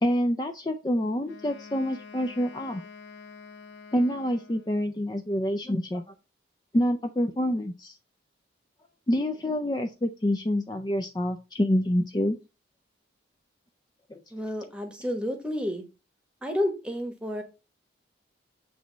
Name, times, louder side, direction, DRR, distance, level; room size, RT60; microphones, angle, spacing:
voice 1, 0.0-2.8 3.9-6.0 6.7-7.9 9.1-12.4 14.1-14.2, equal, 20° left, 6 dB, 0.4 m, -27 dB
Wind instrument woodwind instrument, 1.2-5.0, left 4 dB, 75° left, 1.0 m, -47 dB
voice 2, 14.3-15.8 16.4-17.4, left 1 dB, 5° right, 6 dB, 1.1 m, -30 dB
8.0 x 3.1 x 5.1 m, 0.30 s
head